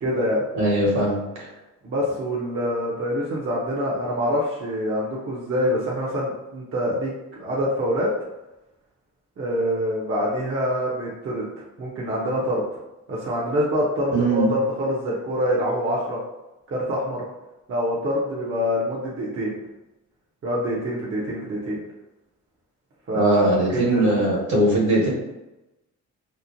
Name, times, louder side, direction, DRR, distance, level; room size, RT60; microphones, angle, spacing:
voice 1, 0.0-0.4 1.8-8.1 9.4-11.5 11.8-12.6 13.1-16.2 16.7-17.2 17.7-19.5 20.4-21.8 23.1-24.1, equal, 45° right, -6 dB, 0.7 m, -25 dB
voice 2, 0.5-1.5 14.1-14.5 23.1-25.1, right 1 dB, 70° right, -4 dB, 1.3 m, -20 dB
2.9 x 2.1 x 2.5 m, 0.99 s
cardioid pair, 90°, 30 cm